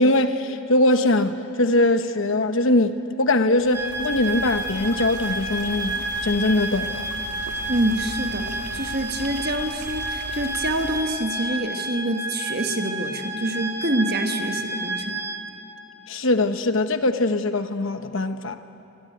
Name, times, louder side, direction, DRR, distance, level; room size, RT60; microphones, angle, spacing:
voice 1, 0.0-7.1 16.1-18.6, left 2 dB, 60° left, 1.0 m, -21 dB
sound 1, 3.6-11.0, right 2 dB, 90° right, 1.9 m, -39 dB
sound 2, 3.7-15.4, right 1 dB, 10° right, 1.4 m, -30 dB
voice 2, 7.7-15.2, right 1 dB, 45° right, 1.5 m, -26 dB
25.0 x 19.0 x 9.3 m
head